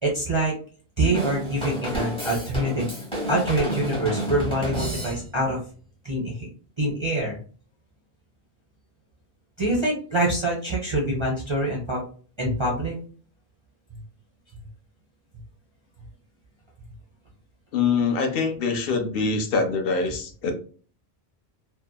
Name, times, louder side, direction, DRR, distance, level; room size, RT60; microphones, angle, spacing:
voice 1, 0.0-0.5 1.0-2.9 3.3-5.6 6.0-6.5 6.8-7.4 9.6-12.0 12.4-13.0, right 1 dB, 35° right, -3 dB, 0.6 m, -25 dB
Drum kit / Drum, 1.1-5.5, right 1 dB, 5° left, 0.9 m, -30 dB
voice 2, 17.7-20.5, left 4 dB, 65° left, 6 dB, 0.7 m, -24 dB
2.7 x 2.1 x 2.2 m, 0.41 s
omnidirectional pair, 1.1 m